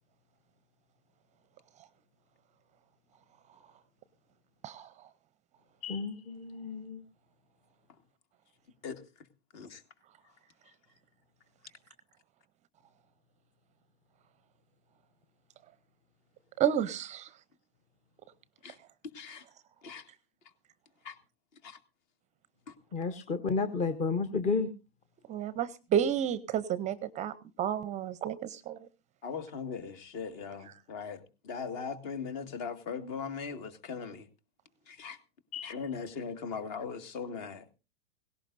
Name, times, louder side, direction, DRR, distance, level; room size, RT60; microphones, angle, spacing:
voice 1, 5.8-7.0 22.9-24.7 35.5-35.7, left 4 dB, 25° left, 10 dB, 0.8 m, -32 dB
voice 2, 16.6-17.3 25.3-27.3 27.6-28.8, right 9 dB, 25° right, 17 dB, 0.6 m, -31 dB
voice 3, 19.1-19.4 19.8-20.0 21.0-21.2 21.6-21.8 22.7-22.8 29.2-31.2 31.4-34.3 34.9-35.2 35.6-37.8, left 5 dB, 45° left, 9 dB, 1.9 m, -39 dB
17.5 x 17.0 x 2.6 m, 0.31 s
hypercardioid pair, 110°, 30 cm